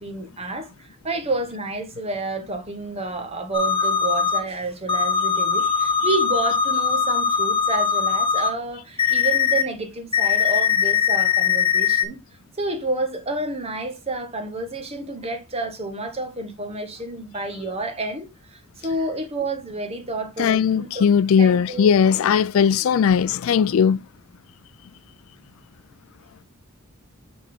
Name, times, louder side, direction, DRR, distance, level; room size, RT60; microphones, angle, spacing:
voice 1, 0.0-12.2 12.5-21.1 21.4-21.9, right 2 dB, 30° right, 1.5 m, -30 dB
sound 1, 3.5-4.4 4.9-8.5 9.0-9.6 10.1-12.0, left 7 dB, 25° left, 1.2 m, -21 dB
voice 2, 20.4-24.0, left 7 dB, 65° left, 0.3 m, -18 dB
6.0 x 5.9 x 3.5 m
head